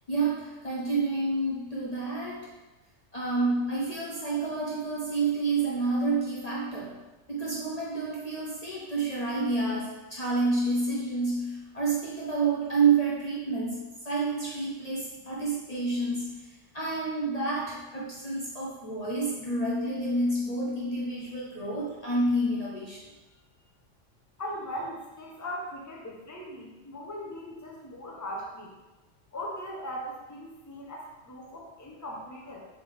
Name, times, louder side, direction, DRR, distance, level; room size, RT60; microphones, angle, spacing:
voice 1, 0.1-2.6 3.1-7.0 7.3-23.0, right 3 dB, 35° left, -6 dB, 1.0 m, -29 dB
voice 2, 24.4-28.7 29.3-32.6, equal, 15° left, -3 dB, 1.0 m, -39 dB
7.3 x 3.8 x 3.5 m, 1.1 s
omnidirectional pair, 1.3 m